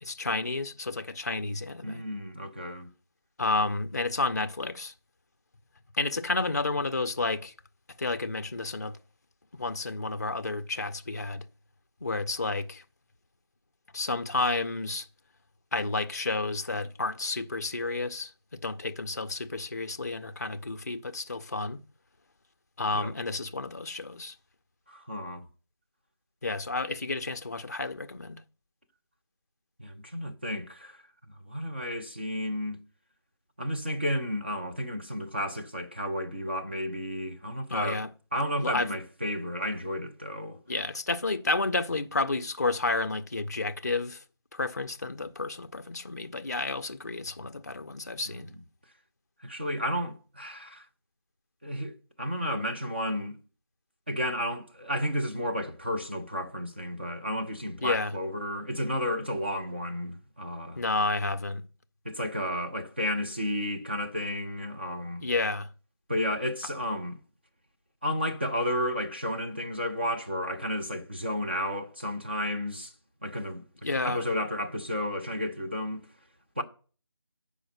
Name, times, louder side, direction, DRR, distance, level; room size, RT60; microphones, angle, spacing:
voice 1, 0.0-2.0 3.4-4.9 5.9-7.5 8.0-9.0 9.6-11.4 12.0-12.8 13.9-15.1 15.7-21.8 22.8-24.3 26.4-28.4 37.7-38.1 38.6-38.9 40.7-44.2 44.5-48.5 57.8-58.1 60.8-61.6 65.2-65.7 73.8-74.2, left 3 dB, 35° left, 0.4 m, -31 dB
voice 2, 1.8-2.9 22.9-23.1 24.9-25.5 29.8-31.0 31.4-32.8 33.6-38.0 38.3-40.6 48.3-48.5 49.4-50.9 51.6-51.9 52.2-53.4 54.1-60.8 62.0-65.3 66.1-67.2 68.0-72.9 73.2-73.6 73.9-76.1 76.6-76.7, equal, 25° right, 0.5 m, -32 dB
8.7 x 5.0 x 6.5 m
figure-of-eight pair, 175°, 14 cm